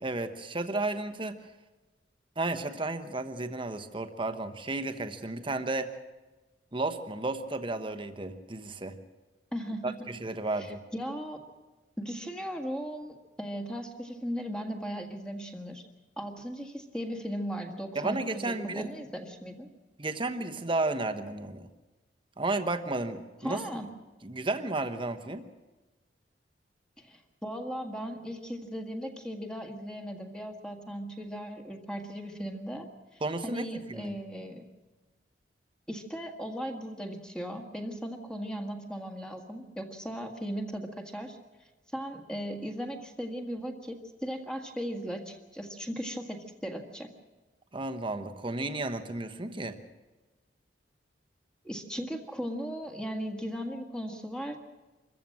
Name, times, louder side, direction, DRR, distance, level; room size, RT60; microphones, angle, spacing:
voice 1, 0.0-1.4 2.4-5.9 6.7-9.0 9.8-10.8 17.9-18.9 20.0-21.7 22.4-23.6 24.2-25.4 33.2-34.2 47.7-49.8, right 2 dB, 30° right, 9 dB, 1.1 m, -33 dB
voice 2, 9.5-10.0 10.6-11.4 12.0-15.8 16.2-19.7 23.4-23.9 27.0-32.9 33.1-34.6 35.9-41.4 41.9-47.1 51.6-54.6, equal, 5° left, 3 dB, 1.7 m, -37 dB
25.0 x 14.5 x 7.6 m, 1.2 s
head